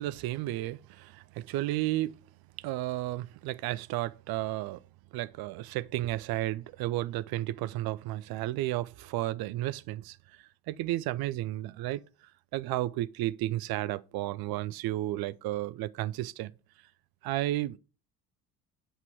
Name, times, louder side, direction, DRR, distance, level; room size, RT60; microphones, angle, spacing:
voice 1, 0.0-2.2 2.6-4.8 5.1-10.2 10.7-12.0 12.5-16.5 17.2-17.8, right 15 dB, 50° right, 0.7 m, -32 dB
8.2 x 6.8 x 4.7 m
figure-of-eight pair, 60°, 49 cm